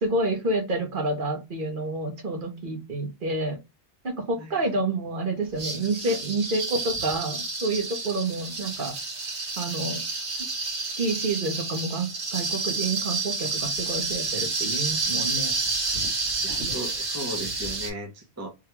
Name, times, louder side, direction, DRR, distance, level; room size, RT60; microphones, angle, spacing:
voice 1, 0.0-3.6 4.0-8.9 9.6-10.0 10.8-15.5, right 2 dB, 50° right, 1.0 m, -29 dB
sound 1, 5.6-17.9, right 3 dB, 75° right, 1.6 m, -30 dB
voice 2, 16.4-18.5, right 1 dB, 20° right, 0.6 m, -36 dB
3.6 x 2.3 x 3.0 m
omnidirectional pair, 1.2 m